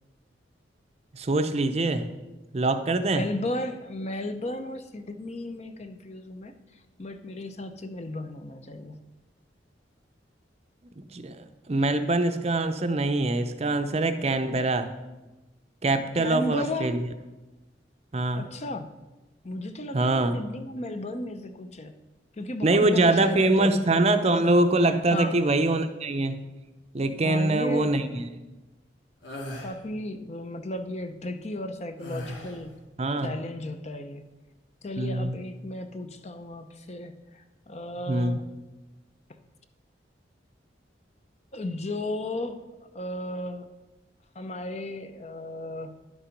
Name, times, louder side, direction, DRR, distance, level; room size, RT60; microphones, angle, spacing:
voice 1, 1.1-2.1 2.5-3.3 11.0-14.9 15.8-17.0 18.1-18.5 19.9-20.4 22.6-26.4 26.9-28.3 33.0-33.3 35.0-35.4 38.1-38.4, right 2 dB, 35° right, 9 dB, 0.6 m, -24 dB
voice 2, 3.1-6.5 7.0-9.0 16.2-16.9 18.3-18.9 19.4-21.9 22.3-23.8 25.1-25.4 27.2-28.0 29.6-32.7 33.2-34.2 34.8-38.4 41.5-42.6 42.9-43.7 44.3-45.9, left 1 dB, 35° left, 9 dB, 0.6 m, -34 dB
sound 1, 29.2-29.7 32.0-32.7, equal, 75° left, 1.9 m, -37 dB
10.5 x 7.2 x 5.2 m, 1.1 s
head